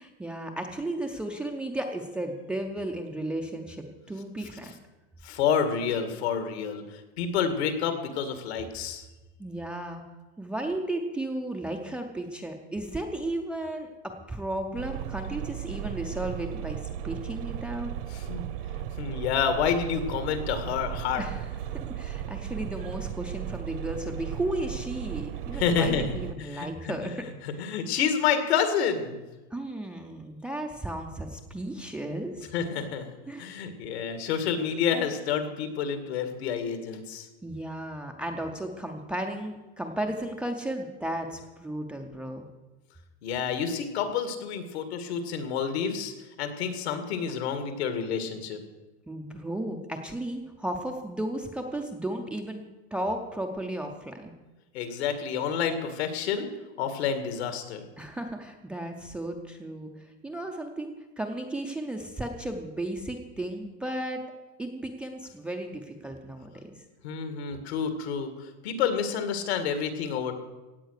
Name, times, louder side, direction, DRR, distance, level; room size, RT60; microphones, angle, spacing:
voice 1, 0.0-4.7 9.4-10.0 10.4-17.9 21.2-27.3 27.5-27.6 29.5-32.5 33.3-33.5 37.4-42.5 49.1-52.6 52.9-54.3 58.0-64.2 64.6-66.8, right 1 dB, 5° right, 3 dB, 0.4 m, -34 dB
voice 2, 5.2-6.8 7.2-9.0 18.1-18.5 19.0-21.2 25.5-27.1 27.4-29.2 32.5-33.1 33.4-37.3 43.2-46.1 46.4-48.6 54.7-56.5 56.8-57.9 67.0-70.3, left 7 dB, 75° left, 8 dB, 2.2 m, -29 dB
sound 1, 14.8-26.3, right 10 dB, 55° right, 0.9 m, -36 dB
16.0 x 8.9 x 6.5 m, 1.1 s
supercardioid pair, 170°, 32 cm